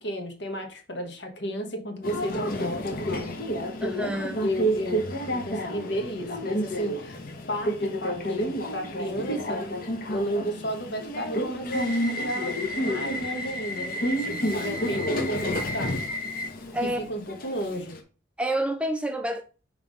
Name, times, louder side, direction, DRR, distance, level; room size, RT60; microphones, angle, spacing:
voice 1, 0.0-3.4 4.4-7.2 7.5-9.6 10.1-16.0 17.1-17.9, equal, 65° left, 1.3 m, -33 dB
Subway metro underground, 2.0-18.0, equal, 45° left, 1.0 m, -30 dB
voice 2, 3.8-4.4 16.7-17.0 18.4-19.4, right 1 dB, 5° right, 0.4 m, -28 dB
5.7 x 3.3 x 5.3 m
head